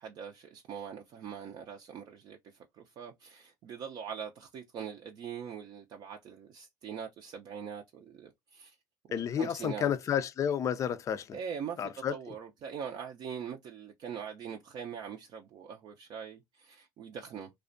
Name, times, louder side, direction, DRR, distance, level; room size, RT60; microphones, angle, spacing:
voice 1, 0.0-2.4 2.8-8.8 9.1-9.9 11.3-17.5, right 7 dB, 50° right, 0.5 m, -42 dB
voice 2, 9.1-11.4 11.8-12.2, left 8 dB, 35° left, 0.4 m, -31 dB
2.4 x 2.1 x 2.5 m
supercardioid pair, 95°, 9 cm